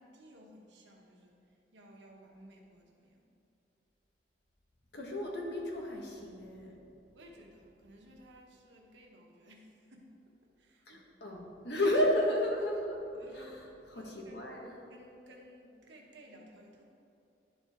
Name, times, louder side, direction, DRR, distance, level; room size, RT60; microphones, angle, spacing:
voice 1, 0.0-1.4 1.7-3.2 7.1-11.0 13.1-14.5 14.9-16.8, equal, 85° right, 0 dB, 1.1 m, -56 dB
voice 2, 4.9-6.8 10.9-13.0 13.3-13.5 13.9-14.7, left 1 dB, 65° left, -1 dB, 1.2 m, -32 dB
11.0 x 4.4 x 3.5 m, 2.7 s
head